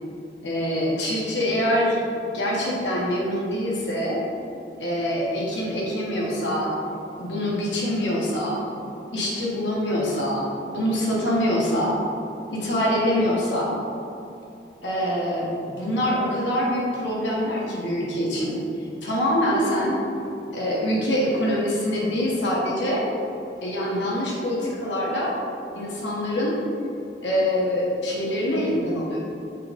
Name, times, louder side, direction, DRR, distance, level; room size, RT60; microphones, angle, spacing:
voice 1, 0.4-2.0 2.3-4.2 4.8-6.8 7.2-8.6 9.1-10.5 10.7-12.0 12.5-13.8 14.8-18.6 19.0-20.0 20.5-23.1 23.6-25.4 25.7-26.6 27.2-29.2, equal, 75° left, -4 dB, 1.4 m, -24 dB
7.5 x 3.7 x 5.2 m, 2.8 s
head